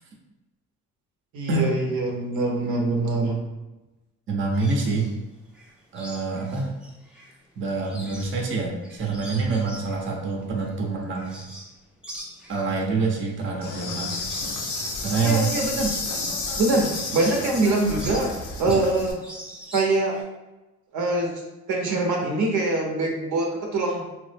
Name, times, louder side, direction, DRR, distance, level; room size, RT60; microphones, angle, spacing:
voice 1, 1.3-3.4 15.2-15.9 16.6-18.3 18.5-19.2 19.7-20.2 20.9-21.4 21.7-24.1, right 2 dB, 75° right, 0 dB, 0.7 m, -24 dB
voice 2, 4.3-5.1 5.9-6.7 7.6-11.5 12.5-14.2 14.6-14.7 15.0-15.6, right 4 dB, 40° right, 0 dB, 0.7 m, -26 dB
sound 1, 4.5-5.1 5.5-7.3 7.7-11.8 12.0-18.9 19.2-20.2, equal, 5° right, 0.5 m, -41 dB
Insect, 13.6-19.1, left 3 dB, 75° left, 0.7 m, -31 dB
3.0 x 2.0 x 3.3 m, 1.0 s
cardioid pair, 90°, 30 cm